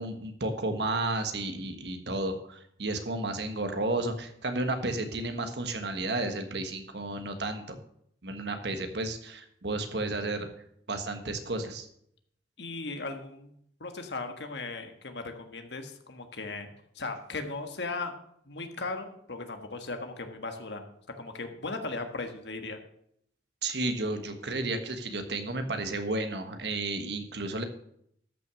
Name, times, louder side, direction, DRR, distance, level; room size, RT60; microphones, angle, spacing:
voice 1, 0.0-7.8 8.2-10.5 10.9-11.9 23.6-27.6, right 2 dB, 75° right, 6 dB, 1.5 m, -32 dB
voice 2, 12.6-13.5 13.8-16.7 16.9-18.2 18.5-20.8 21.2-22.8, left 3 dB, 75° left, 6 dB, 1.6 m, -37 dB
13.0 x 6.2 x 6.3 m, 0.70 s
head